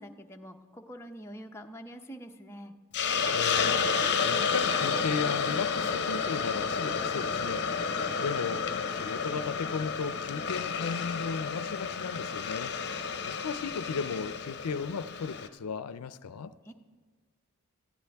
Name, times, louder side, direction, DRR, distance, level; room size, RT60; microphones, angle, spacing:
voice 1, 0.0-2.7 16.7-16.8, equal, 10° left, 0.7 m, -45 dB
Hiss, 2.9-15.5, left 5 dB, 50° left, 0.8 m, -31 dB
voice 2, 3.3-3.8 4.2-12.7 13.3-16.5, left 5 dB, 85° left, 0.5 m, -35 dB
18.0 x 14.5 x 3.5 m
head